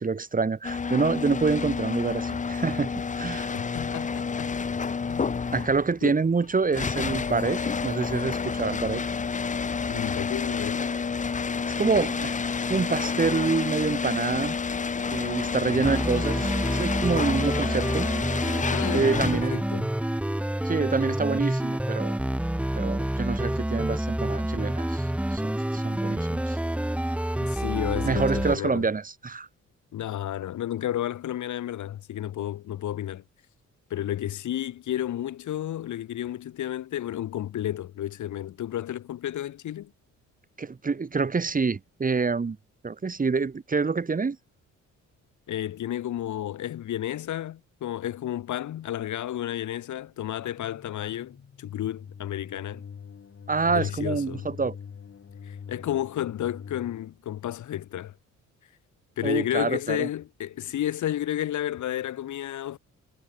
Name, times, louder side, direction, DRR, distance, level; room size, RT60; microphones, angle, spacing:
voice 1, 0.0-2.9 3.2-3.5 5.5-9.0 11.8-12.4 12.7-14.6 15.1-18.1 18.9-19.6 20.6-22.2 22.7-25.1 25.3-26.6 28.0-29.5 40.6-42.6 42.8-44.4 53.5-54.8 59.2-60.1, right 4 dB, 25° right, 1.9 m, -27 dB
sound 1, 0.6-19.7, left 5 dB, 25° left, 0.9 m, -29 dB
voice 2, 3.5-4.5 5.1-5.4 6.0-6.2 9.9-10.9 15.5-16.0 18.7-19.9 27.4-28.8 29.9-33.2 33.9-39.9 45.5-52.8 53.7-54.4 55.5-58.1 59.2-62.8, left 12 dB, 75° left, 5.2 m, -32 dB
sound 2, 15.8-28.6, right 1 dB, 5° right, 1.1 m, -28 dB
sound 3, 50.4-57.1, left 7 dB, 45° left, 4.9 m, -44 dB
cardioid pair, 90°, 30 cm